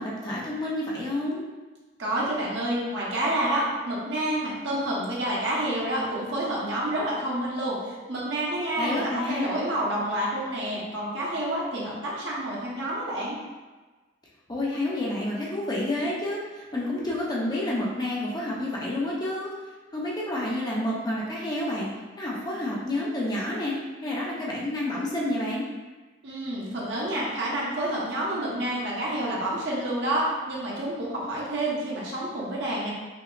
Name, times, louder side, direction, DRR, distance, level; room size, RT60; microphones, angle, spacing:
voice 1, 0.0-1.4 8.8-9.5 14.5-19.5 19.9-21.9 22.2-23.7 24.0-25.7, left 1 dB, 20° left, -5 dB, 0.6 m, -29 dB
voice 2, 2.0-13.4 26.2-32.9, right 1 dB, 65° right, -6 dB, 0.9 m, -28 dB
5.6 x 2.0 x 2.5 m, 1.3 s
head